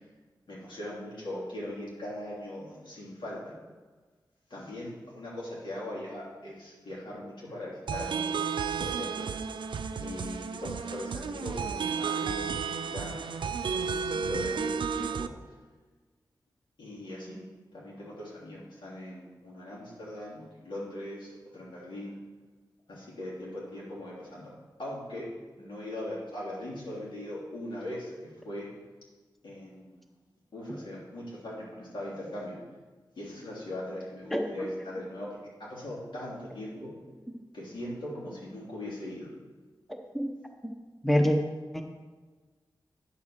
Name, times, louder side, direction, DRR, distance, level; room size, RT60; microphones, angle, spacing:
voice 1, 0.5-3.5 4.5-8.5 8.8-9.3 9.9-12.4 12.6-13.2 13.6-15.3 16.8-17.4 17.7-22.2 22.9-24.5 24.8-25.3 25.6-28.7 29.4-30.0 30.5-32.6 33.1-36.9 37.5-39.3, left 1 dB, 80° left, -6 dB, 3.3 m, -40 dB
sound 1, 7.9-15.3, right 6 dB, 85° right, 0.4 m, -32 dB
voice 2, 41.0-41.4 41.7-41.8, equal, ahead, 3 dB, 0.9 m, -25 dB
9.7 x 4.7 x 7.2 m, 1.4 s
wide cardioid pair, 70°, 8 cm